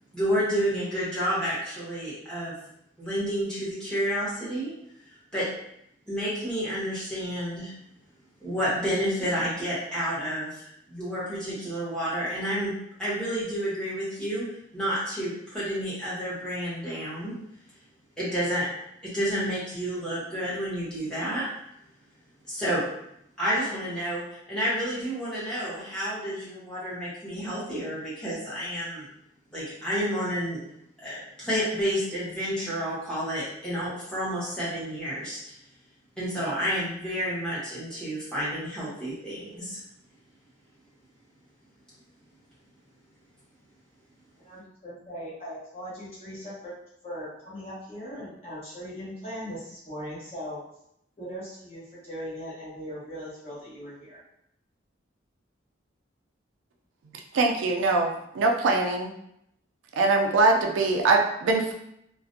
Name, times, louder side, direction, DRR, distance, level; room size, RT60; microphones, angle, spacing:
voice 1, 0.1-2.5 3.0-4.7 5.3-5.4 6.1-7.7 8.4-10.6 10.9-12.7 13.0-14.4 14.7-17.3 18.2-18.7 19.0-21.4 22.5-22.8 23.4-29.1 29.5-30.6 31.0-35.6 36.2-39.8, equal, 5° left, -10 dB, 0.9 m, -30 dB
voice 2, 44.4-46.7 47.0-50.6 51.2-54.2, equal, 35° left, -9 dB, 1.0 m, -39 dB
voice 3, 57.3-59.1 60.0-61.7, right 3 dB, 85° right, 2 dB, 0.4 m, -22 dB
2.4 x 2.1 x 2.5 m, 0.75 s
head